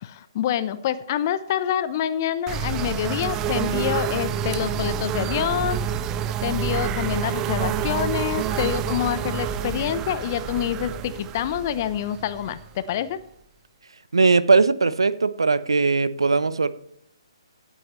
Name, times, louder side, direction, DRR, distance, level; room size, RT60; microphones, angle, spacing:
voice 1, 0.0-5.8 6.4-13.2, left 10 dB, 35° left, 13 dB, 0.7 m, -26 dB
sound 1, 2.5-13.1, right 8 dB, 20° right, 0.7 m, -28 dB
voice 2, 14.1-16.7, right 4 dB, 70° right, 15 dB, 0.8 m, -19 dB
16.5 x 9.2 x 3.2 m, 0.75 s
figure-of-eight pair, 135°, 3 cm